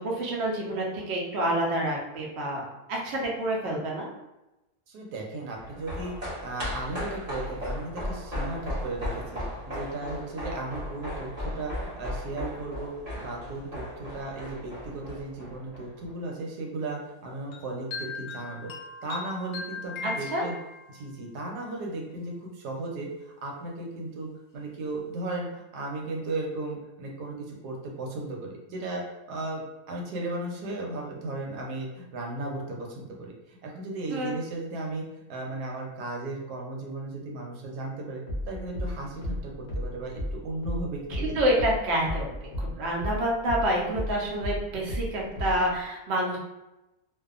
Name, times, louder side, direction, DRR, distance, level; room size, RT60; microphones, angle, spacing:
voice 1, 0.0-4.1 20.0-20.4 34.1-34.3 41.1-42.3 42.6-46.4, right 1 dB, 60° right, -2 dB, 0.7 m, -28 dB
voice 2, 4.9-18.7 19.0-20.6 20.9-35.0 35.3-41.3, right 2 dB, 85° right, 0 dB, 1.2 m, -36 dB
sound 1, 5.5-16.1 16.4-16.5, left 1 dB, 30° right, 0.9 m, -36 dB
sound 2, 17.5-21.0, left 4 dB, 85° left, 1.1 m, -38 dB
sound 3, 38.3-43.2 43.5-45.7, left 1 dB, 50° left, 0.5 m, -32 dB
2.6 x 2.3 x 2.4 m, 0.97 s
omnidirectional pair, 1.7 m